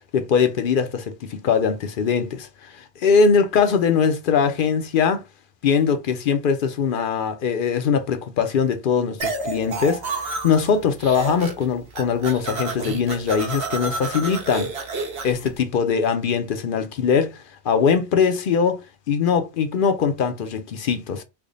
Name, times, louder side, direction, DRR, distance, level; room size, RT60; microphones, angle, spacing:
voice 1, 0.1-5.2 5.6-14.7 15.2-18.8 19.1-21.2, left 6 dB, 60° left, 0.7 m, -21 dB
sound 1, 9.2-10.7 11.0-11.7 11.9-15.5, right 3 dB, 65° right, 1.1 m, -30 dB
3.4 x 2.1 x 3.8 m
omnidirectional pair, 1.2 m